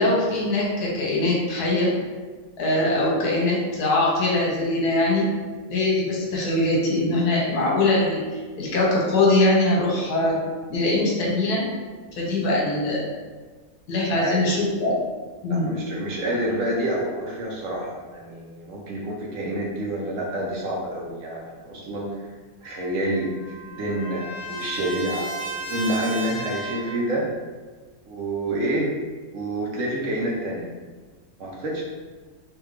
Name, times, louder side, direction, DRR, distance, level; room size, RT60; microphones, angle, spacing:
voice 1, 0.0-1.9 2.6-5.3 5.7-8.2 8.6-10.4 10.7-11.7 12.2-13.1 13.9-15.0 15.4-15.8, left 2 dB, 75° left, -4 dB, 1.4 m, -22 dB
voice 2, 15.5-22.2 22.6-27.3 28.1-28.9 29.3-30.7 31.4-31.8, right 1 dB, 65° right, -3 dB, 0.9 m, -28 dB
Trumpet, 22.6-27.0, right 2 dB, 40° right, 1.2 m, -34 dB
3.4 x 2.7 x 3.2 m, 1.4 s
omnidirectional pair, 1.7 m